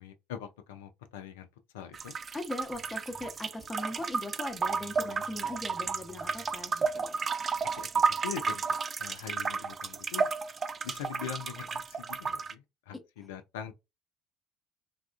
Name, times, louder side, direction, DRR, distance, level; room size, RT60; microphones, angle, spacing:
voice 1, 0.0-1.5 1.7-2.1 7.8-7.9 8.2-8.6 9.0-10.3 10.8-13.7, left 9 dB, 70° left, 0.4 m, -42 dB
sound 1, 1.9-12.5, right 5 dB, 35° right, 0.3 m, -32 dB
voice 2, 2.3-7.2 12.9-13.0, left 2 dB, 15° left, 0.8 m, -39 dB
3.3 x 2.3 x 2.4 m
figure-of-eight pair, 60°, 0 cm